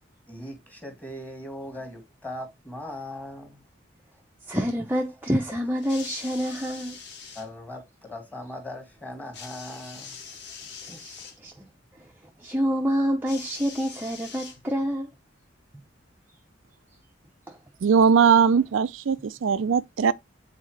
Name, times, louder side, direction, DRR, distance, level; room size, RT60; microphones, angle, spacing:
voice 1, 0.3-3.6 7.3-10.2, left 1 dB, 10° left, 2.0 m, -39 dB
voice 2, 4.5-7.0 10.9-11.7 12.0-12.1 12.4-15.1 17.5-17.6, equal, 10° right, 0.7 m, -27 dB
sound 1, 5.8-7.5 9.3-11.4 13.3-14.9 15.9-16.0, left 6 dB, 65° left, 1.4 m, -43 dB
voice 3, 17.8-20.1, right 6 dB, 90° right, 0.4 m, -20 dB
8.1 x 4.2 x 3.2 m
head